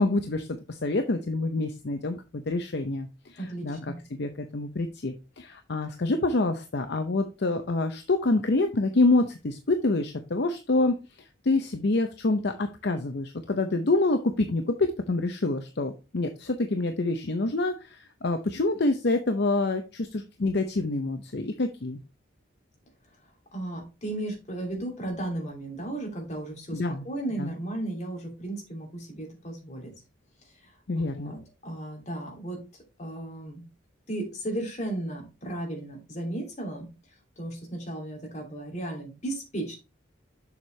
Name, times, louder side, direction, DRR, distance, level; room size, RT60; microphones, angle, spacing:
voice 1, 0.0-3.8 4.1-11.0 11.4-22.0 26.7-27.0 27.4-27.5 30.9-31.4, left 2 dB, 55° left, 7 dB, 0.7 m, -27 dB
voice 2, 3.4-4.0 23.5-29.9 30.4-32.6 33.0-33.6 34.1-39.8, right 1 dB, 35° left, 0 dB, 2.7 m, -35 dB
6.9 x 6.4 x 3.2 m, 0.28 s
head